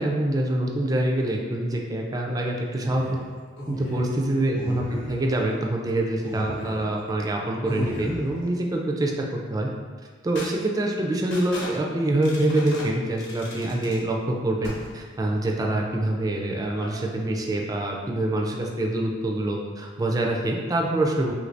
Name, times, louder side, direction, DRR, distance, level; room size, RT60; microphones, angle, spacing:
voice 1, 0.0-3.2 3.7-9.7 10.2-21.3, right 1 dB, 20° right, 0 dB, 0.3 m, -25 dB
sound 1, 2.8-4.3 4.5-5.4 6.2-7.0 7.6-8.5 10.4-10.5 11.3-11.7 12.2-12.9 13.2-14.0 14.6-15.1 16.8-17.0, left 1 dB, 70° left, 0.9 m, -36 dB
3.1 x 2.6 x 3.2 m, 1.6 s
head